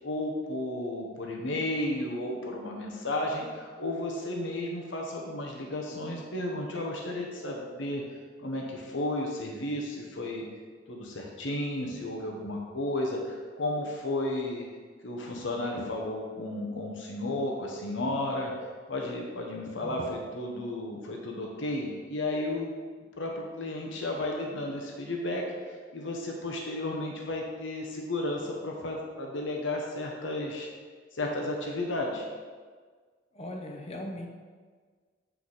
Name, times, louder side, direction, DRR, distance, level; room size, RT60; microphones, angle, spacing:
voice 1, 0.0-8.0 8.4-10.4 10.9-14.7 15.0-18.5 18.9-22.7 23.2-30.7 31.1-32.3, left 1 dB, 75° left, 0 dB, 1.0 m, -33 dB
voice 2, 33.3-34.3, left 1 dB, 35° left, 2 dB, 0.8 m, -39 dB
8.0 x 4.6 x 4.1 m, 1.5 s
head